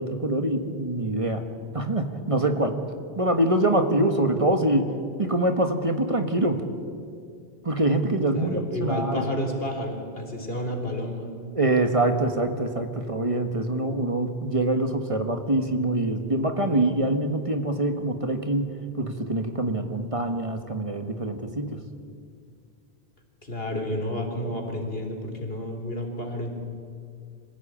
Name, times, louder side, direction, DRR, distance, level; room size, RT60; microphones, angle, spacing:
voice 1, 0.0-1.5 1.7-2.8 3.2-4.9 5.2-6.6 7.6-9.2 11.5-18.7 19.0-21.8, right 1 dB, 30° right, 6 dB, 1.5 m, -24 dB
voice 2, 8.3-11.3 23.4-26.5, left 1 dB, 65° left, 3 dB, 3.7 m, -31 dB
26.0 x 16.0 x 8.8 m, 2.3 s
omnidirectional pair, 1.1 m